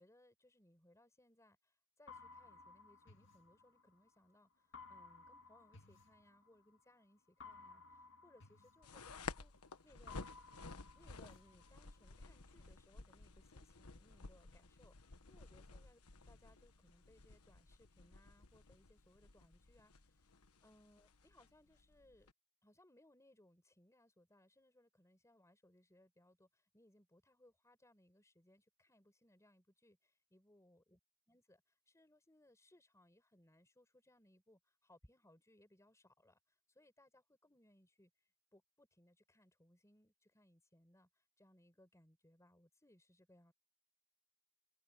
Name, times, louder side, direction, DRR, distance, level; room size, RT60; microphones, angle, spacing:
voice 1, 0.0-10.2 10.9-22.3 22.6-31.0 31.3-43.5, left 1 dB, 15° left, 4.5 m, -69 dB
sound 1, 2.1-4.1 4.7-6.8 7.4-9.7 10.1-12.1, left 4 dB, 60° left, 1.9 m, -58 dB
sound 2, 8.8-22.3, left 3 dB, 85° left, 1.3 m, -54 dB
head